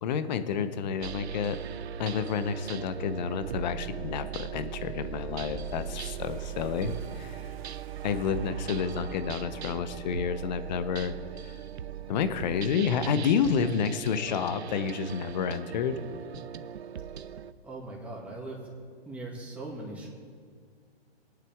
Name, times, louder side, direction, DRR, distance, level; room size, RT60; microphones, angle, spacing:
voice 1, 0.0-1.6 2.0-7.4 8.0-11.1 11.4-11.5 12.1-16.0, left 6 dB, 45° left, 11 dB, 0.9 m, -29 dB
sound 1, 1.0-17.5, right 10 dB, 85° right, 0.6 m, -39 dB
sound 2, 5.1-10.2, right 2 dB, 50° right, 3.2 m, -46 dB
voice 2, 17.6-18.7 19.1-20.1, right 2 dB, 5° right, -4 dB, 2.3 m, -40 dB
21.5 x 9.4 x 3.6 m, 2.1 s
hypercardioid pair, 145°, 32 cm